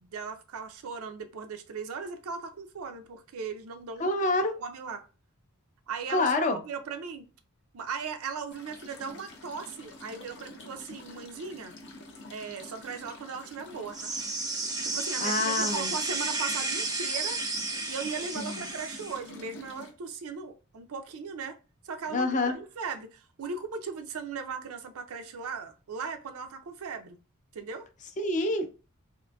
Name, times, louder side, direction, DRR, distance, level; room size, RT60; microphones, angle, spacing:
voice 1, 0.0-4.1 4.6-5.1 5.9-6.3 6.6-7.3 7.7-11.7 12.3-14.1 14.8-17.4 17.9-21.6 21.8-27.2 27.5-27.9, right 5 dB, 80° right, 0.5 m, -38 dB
voice 2, 4.0-4.6 6.1-6.6 15.2-15.9 18.4-18.6 22.1-22.5 28.2-28.7, left 2 dB, 35° left, 0.5 m, -27 dB
sound 1, 8.5-19.9, left 2 dB, 55° left, 0.8 m, -48 dB
sound 2, 13.9-19.2, right 3 dB, 20° right, 0.5 m, -32 dB
3.7 x 2.6 x 2.2 m
head